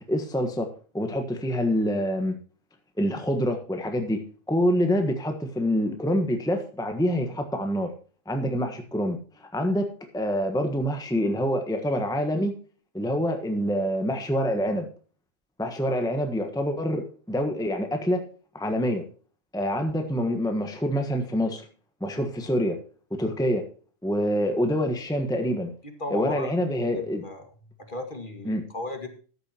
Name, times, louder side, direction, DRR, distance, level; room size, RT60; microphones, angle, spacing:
voice 1, 0.1-0.7 0.9-2.3 3.0-4.2 4.5-7.9 8.3-12.5 12.9-14.9 15.6-18.2 18.5-19.0 19.5-21.7 22.0-22.8 23.1-23.6 24.0-25.7 26.1-27.2 28.4-28.6, equal, 5° left, 5 dB, 1.3 m, -26 dB
voice 2, 26.0-26.5 26.8-27.5 27.8-29.1, left 1 dB, 40° left, 5 dB, 2.3 m, -35 dB
14.0 x 11.0 x 2.9 m, 0.40 s
omnidirectional pair, 1.4 m